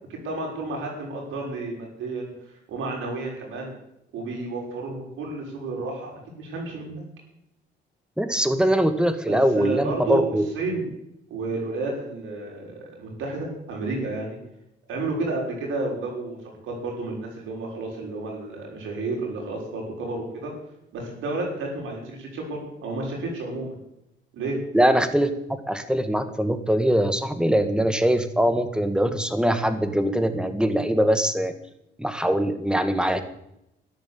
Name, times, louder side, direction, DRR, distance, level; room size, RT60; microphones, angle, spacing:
voice 1, 0.1-2.3 2.7-3.7 4.1-7.1 9.3-10.3 10.5-10.9 11.3-14.4 14.9-20.5 20.9-23.8 24.3-24.6, right 2 dB, 85° right, -1 dB, 6.6 m, -31 dB
voice 2, 8.2-10.5 24.7-31.5 32.0-33.2, equal, 5° right, 9 dB, 1.9 m, -22 dB
13.5 x 10.5 x 8.5 m, 0.80 s
cardioid pair, 90°, 20 cm